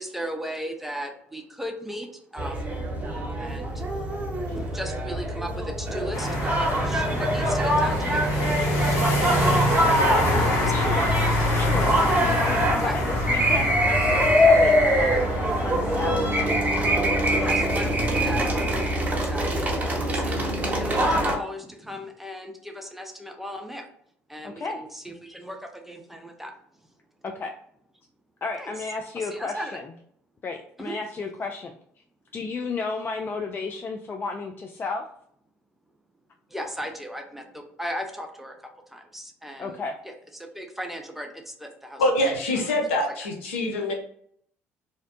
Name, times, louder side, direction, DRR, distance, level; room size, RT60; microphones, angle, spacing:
voice 1, 0.0-2.7 3.4-3.8 4.4-10.1 10.6-11.0 12.4-12.5 12.8-13.0 17.4-23.9 24.3-26.5 28.6-28.7 29.2-29.8 30.8-31.0 36.5-40.1 40.4-42.0 42.5-42.7 43.2-43.3, equal, 5° right, 3 dB, 0.6 m, -37 dB
sound 1, 2.4-21.4, equal, 25° right, 0.9 m, -24 dB
sound 2, 6.1-18.8, left 1 dB, 55° left, 1.0 m, -26 dB
voice 2, 10.7-11.2 11.6-11.9 12.2-16.5 24.4-24.8 27.2-27.5 28.4-29.8 30.4-31.7 32.3-35.0 39.6-39.9, left 4 dB, 35° left, 3 dB, 0.3 m, -33 dB
voice 3, 42.0-43.9, left 1 dB, 85° left, 1 dB, 0.6 m, -24 dB
2.7 x 2.1 x 2.5 m, 0.65 s
hypercardioid pair, 60°, 7 cm